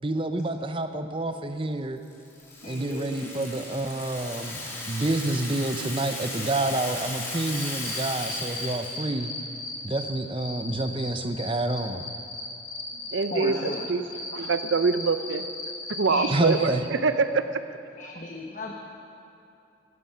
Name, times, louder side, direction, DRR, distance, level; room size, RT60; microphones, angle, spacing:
voice 1, 0.0-2.0 2.6-9.3 9.8-12.1 16.3-16.9, right 2 dB, 25° right, 8 dB, 0.6 m, -28 dB
Rattle (instrument), 2.0-9.0, left 2 dB, 15° left, 2.6 m, -36 dB
voice 2, 2.6-3.3 13.3-13.9 16.1-16.4 18.0-18.7, left 1 dB, 40° left, 0 dB, 1.1 m, -34 dB
Cricket, 7.3-10.0 10.4-13.8 14.1-16.6, left 4 dB, 75° left, 3.9 m, -37 dB
voice 3, 13.1-14.0 14.3-15.4 16.0-17.4, right 4 dB, 75° right, 11 dB, 0.6 m, -24 dB
17.5 x 13.5 x 5.6 m, 2.8 s
head